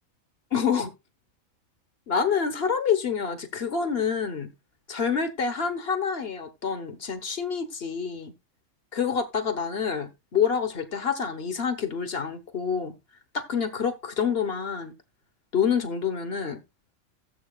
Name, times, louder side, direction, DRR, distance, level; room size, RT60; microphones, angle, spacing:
voice 1, 0.5-0.9 2.1-4.5 4.9-8.3 8.9-12.9 13.3-14.9 15.5-16.6, left 6 dB, 50° left, 1.4 m, -27 dB
15.5 x 7.8 x 2.4 m
omnidirectional pair, 1.4 m